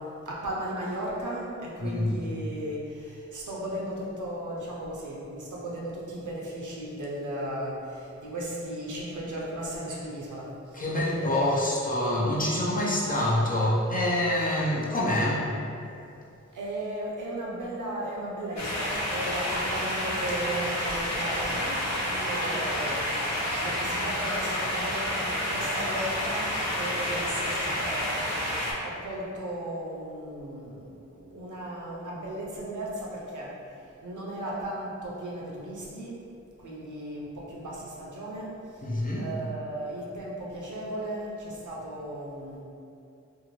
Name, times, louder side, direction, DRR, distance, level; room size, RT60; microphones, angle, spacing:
voice 1, 0.0-10.8 11.2-11.8 14.3-14.5 16.5-21.8 22.0-28.1 28.4-28.5 28.8-30.8 31.2-36.2 36.6-42.6, right 1 dB, 80° right, -5 dB, 0.6 m, -36 dB
voice 2, 1.8-2.1 10.7-15.5 38.8-39.3, left 1 dB, 30° left, -6 dB, 0.6 m, -26 dB
sound 1, 18.6-28.7, left 1 dB, 65° left, 0.7 m, -29 dB
2.6 x 2.5 x 3.0 m, 2.6 s
wide cardioid pair, 75°, 30 cm